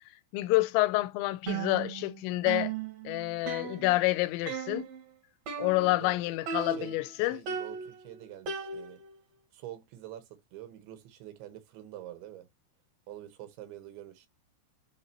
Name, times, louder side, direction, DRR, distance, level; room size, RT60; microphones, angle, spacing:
voice 1, 0.3-2.7 3.1-4.9 5.6-7.4, left 19 dB, 90° left, 2.9 m, -28 dB
sound 1, 1.5-2.2 2.5-4.2 4.5-5.0 5.5-6.1 6.5-7.1 7.5-9.2, right 6 dB, 70° right, 1.7 m, -37 dB
voice 2, 5.6-6.2 6.6-9.0 9.5-12.5 13.1-14.3, right 13 dB, 85° right, 3.4 m, -46 dB
10.5 x 3.8 x 2.8 m
omnidirectional pair, 5.1 m